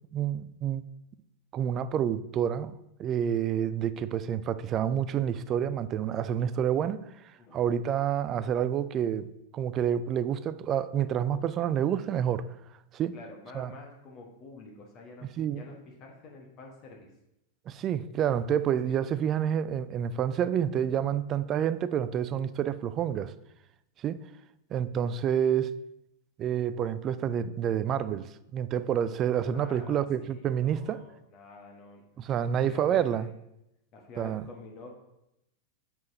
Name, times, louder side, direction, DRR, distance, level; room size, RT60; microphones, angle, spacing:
voice 1, 0.1-0.8 1.5-2.7 3.0-7.0 7.5-9.3 9.5-12.5 12.9-13.1 13.5-13.7 15.4-15.6 17.7-23.3 24.0-24.2 24.7-25.7 26.4-31.0 32.2-33.3 34.2-34.4, right 9 dB, 30° right, 0.3 m, -28 dB
voice 2, 7.4-7.8 13.1-17.1 18.2-18.5 18.8-19.0 29.5-32.0 32.4-33.3 33.9-34.9, left 3 dB, 40° left, 1.3 m, -48 dB
7.2 x 6.1 x 2.8 m
figure-of-eight pair, 90°, 0 cm